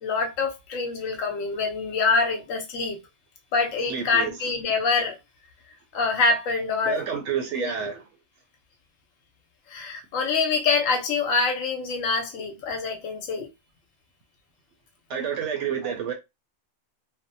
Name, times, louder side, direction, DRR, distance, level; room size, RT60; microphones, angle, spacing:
voice 1, 0.0-3.0 3.5-5.2 5.9-7.0 7.6-7.7 9.7-13.5 15.8-15.9, left 4 dB, 70° left, 1.0 m, -25 dB
voice 2, 3.9-4.3 6.8-8.0 15.1-16.1, right 7 dB, 65° right, 0.8 m, -29 dB
2.6 x 2.1 x 2.6 m
omnidirectional pair, 1.5 m